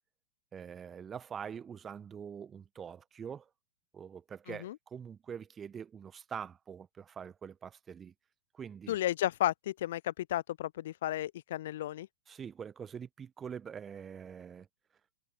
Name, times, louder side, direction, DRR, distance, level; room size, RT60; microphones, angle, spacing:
voice 1, 0.5-3.5 3.9-8.1 8.5-9.0 12.3-14.7, right 7 dB, 20° right, 1.4 m, -44 dB
voice 2, 8.9-12.1, left 13 dB, 55° left, 0.4 m, -33 dB
figure-of-eight pair, 100°, 0 cm